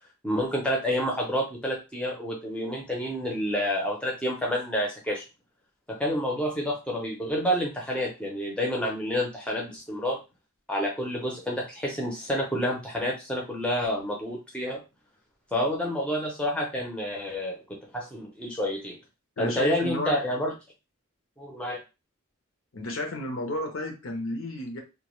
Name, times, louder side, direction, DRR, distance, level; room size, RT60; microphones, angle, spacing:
voice 1, 0.2-5.2 5.9-10.2 10.7-14.8 15.5-19.0 19.4-20.5 21.4-21.8, equal, 5° left, -1 dB, 0.5 m, -29 dB
voice 2, 19.4-20.2 22.7-24.8, left 1 dB, 70° left, 3 dB, 0.6 m, -32 dB
2.2 x 2.1 x 3.0 m, 0.27 s
head